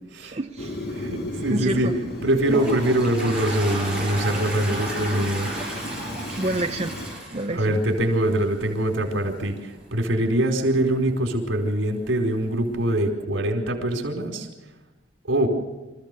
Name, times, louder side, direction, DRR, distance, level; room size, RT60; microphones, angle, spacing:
voice 1, 0.2-1.1 1.5-1.9 6.4-6.9 7.3-7.8, right 1 dB, 35° right, 5 dB, 0.7 m, -28 dB
Fire, 0.6-7.2, left 1 dB, 55° left, 2.1 m, -34 dB
voice 2, 0.9-1.9 2.2-5.5 7.5-14.5 15.2-15.5, right 1 dB, 85° right, 1 dB, 4.6 m, -23 dB
Toilet flush, 2.1-8.5, right 1 dB, 5° right, 5.9 m, -32 dB
26.5 x 15.0 x 6.9 m, 1.1 s
head